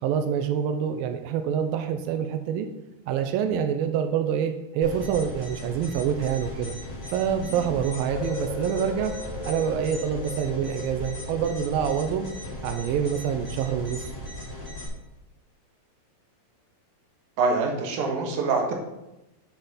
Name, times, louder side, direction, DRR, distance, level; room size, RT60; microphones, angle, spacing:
voice 1, 0.0-2.7 3.1-6.7 7.1-9.1 9.5-12.3 12.6-14.0, right 8 dB, 90° right, 7 dB, 2.4 m, -26 dB
sound 1, 4.8-14.9, left 1 dB, 10° left, 2.5 m, -37 dB
sound 2, 8.1-14.0, left 6 dB, 75° left, 3.2 m, -39 dB
voice 2, 17.4-18.7, right 4 dB, 65° right, 1 dB, 2.6 m, -25 dB
9.5 x 6.6 x 4.2 m, 0.94 s
omnidirectional pair, 4.1 m